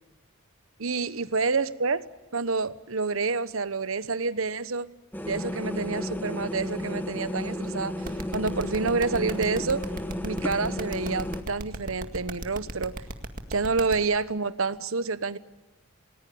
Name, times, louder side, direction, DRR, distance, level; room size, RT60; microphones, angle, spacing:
voice 1, 0.8-2.1 2.3-4.9 5.3-8.0 8.3-9.9 10.2-13.0 13.5-15.4, right 4 dB, 75° right, 15 dB, 1.1 m, -28 dB
sound 1, 5.1-11.4, left 1 dB, 10° left, 1.5 m, -33 dB
sound 2, 8.0-13.9, right 2 dB, 40° right, 2.0 m, -35 dB
29.0 x 20.0 x 8.6 m, 1.1 s
head